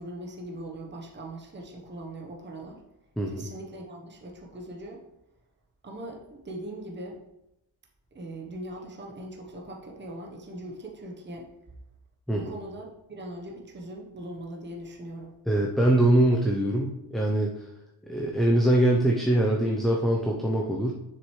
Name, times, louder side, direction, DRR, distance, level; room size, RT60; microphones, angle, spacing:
voice 1, 0.0-2.8 3.3-5.0 5.8-7.2 8.1-11.5 12.3-15.3, right 1 dB, 25° right, -1 dB, 1.1 m, -40 dB
voice 2, 3.2-3.5 12.3-12.5 15.5-17.5 18.1-20.9, right 1 dB, ahead, -1 dB, 0.7 m, -23 dB
7.4 x 6.5 x 3.2 m, 0.90 s
cardioid pair, 100°, 47 cm